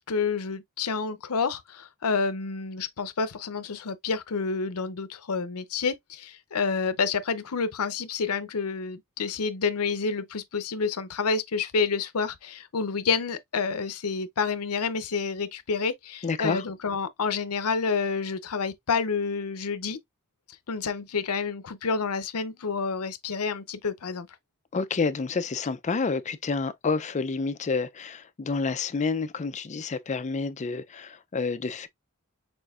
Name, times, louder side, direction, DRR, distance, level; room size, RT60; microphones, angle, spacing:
voice 1, 0.1-20.0 20.7-24.3, left 5 dB, 75° left, 0.7 m, -29 dB
voice 2, 16.2-16.7 24.7-31.9, left 4 dB, 30° left, 0.4 m, -29 dB
6.2 x 2.6 x 2.4 m
head